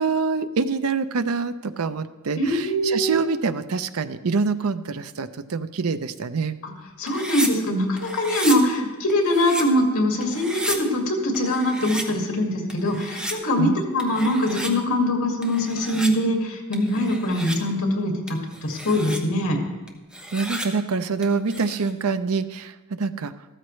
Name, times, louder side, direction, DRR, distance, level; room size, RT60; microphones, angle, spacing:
voice 1, 0.0-6.6 13.6-13.8 20.3-23.3, right 4 dB, 80° right, 11 dB, 0.6 m, -25 dB
voice 2, 2.4-3.3 7.0-19.6, left 1 dB, 80° left, 2 dB, 2.1 m, -23 dB
sound 1, 7.1-7.5 8.0-8.6 9.1-9.6 10.2-10.8 11.3-12.0 12.7-13.3 14.0-14.7 15.4-16.1 16.7-17.6 18.3-19.2 19.9-20.7 21.2-21.9, right 1 dB, 5° right, 0.9 m, -32 dB
14.0 x 13.0 x 3.2 m, 1.2 s
head